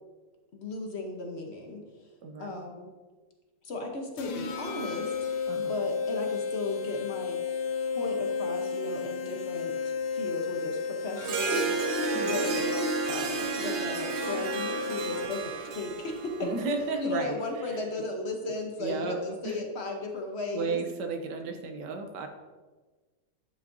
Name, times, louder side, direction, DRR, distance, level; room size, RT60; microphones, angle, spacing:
voice 1, 0.5-1.8 2.4-2.9 3.6-7.4 7.8-12.8 13.1-16.5 17.0-20.8, left 2 dB, 45° left, 2 dB, 0.9 m, -36 dB
voice 2, 2.2-2.6 5.5-5.7 12.1-12.4 16.4-17.8 18.4-18.5 18.8-19.6 20.5-22.3, right 4 dB, 70° right, 5 dB, 1.4 m, -34 dB
sound 1, 4.2-15.6, left 5 dB, 85° left, 1.5 m, -33 dB
Harp, 11.2-16.9, right 4 dB, 90° right, 1.5 m, -32 dB
10.5 x 5.6 x 2.7 m, 1.3 s
omnidirectional pair, 2.0 m